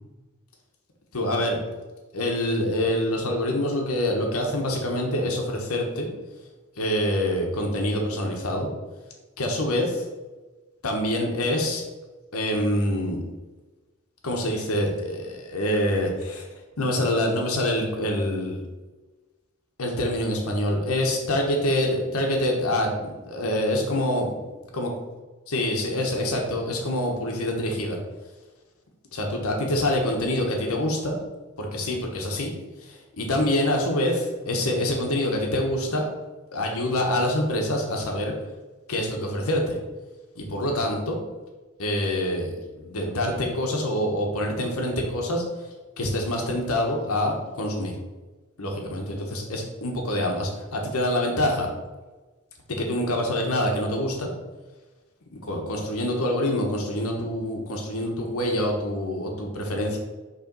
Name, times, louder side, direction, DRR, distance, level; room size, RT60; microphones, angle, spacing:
voice 1, 1.1-1.6 2.1-6.1 6.7-8.7 9.4-10.0 10.8-11.8 12.3-13.2 14.2-16.5 16.8-18.6 19.8-24.3 24.7-24.9 25.5-28.0 29.1-31.2 31.6-32.5 32.8-36.0 36.5-38.3 38.9-39.8 40.4-41.2 41.8-45.7 46.0-47.9 48.6-51.7 52.7-54.3 55.3-60.0, left 1 dB, 70° left, 1 dB, 1.1 m, -26 dB
5.6 x 3.3 x 5.3 m, 1.2 s
head